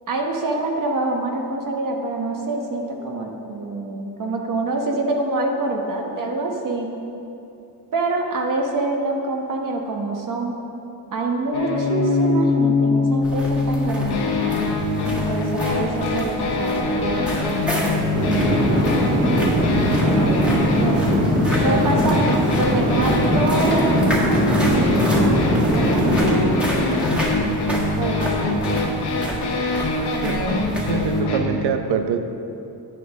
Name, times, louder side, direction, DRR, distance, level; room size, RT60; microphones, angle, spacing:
voice 1, 0.1-6.9 7.9-10.6 11.1-14.3 15.0-21.2 21.6-22.2 22.6-24.8 25.7-26.9 28.0-28.6, right 2 dB, 55° right, 1 dB, 1.3 m, -26 dB
sound 1, 11.5-31.4, left 2 dB, 80° left, 1.4 m, -23 dB
sound 2, 13.2-31.2, equal, 5° right, 1.7 m, -31 dB
sound 3, 18.1-26.4, equal, 30° right, 2.0 m, -20 dB
voice 2, 30.9-32.2, right 7 dB, 80° right, 8 dB, 0.8 m, -24 dB
10.5 x 8.4 x 3.6 m, 2.8 s
cardioid pair, 105°, 39 cm